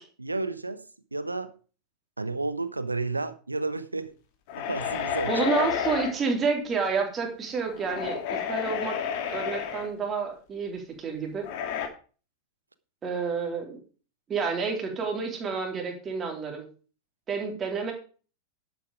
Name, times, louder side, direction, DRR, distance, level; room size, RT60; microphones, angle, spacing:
voice 1, 0.2-1.6 2.2-4.1 4.5-5.3, right 3 dB, 80° right, 1.0 m, -32 dB
sound 1, 4.5-6.2 7.7-9.9 11.4-11.9, left 8 dB, 45° left, 2.4 m, -30 dB
voice 2, 5.3-9.0 9.3-11.5 13.0-13.8 14.3-16.7 17.3-17.9, right 5 dB, 25° right, 3.8 m, -29 dB
11.5 x 8.3 x 5.0 m
figure-of-eight pair, 90°, 0 cm